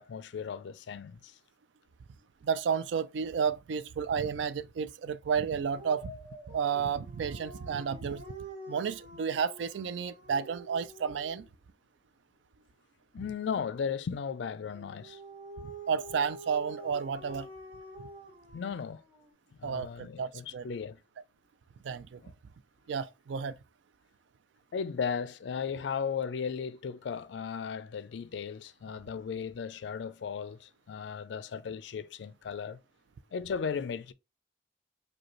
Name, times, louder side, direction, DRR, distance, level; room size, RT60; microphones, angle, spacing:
voice 1, 0.0-1.4 13.1-15.2 18.5-19.0 19.5-21.0 22.2-22.3 24.7-32.8 33.3-34.1, left 6 dB, 75° left, 0.4 m, -36 dB
voice 2, 2.4-6.1 6.5-8.2 8.7-11.4 15.6-17.5 18.0-18.1 19.6-20.7 21.8-22.2 22.9-23.6, right 6 dB, 85° right, 0.3 m, -32 dB
Dog, 5.7-11.6 14.7-19.3, right 1 dB, 30° right, 1.4 m, -47 dB
5.0 x 2.2 x 3.0 m
head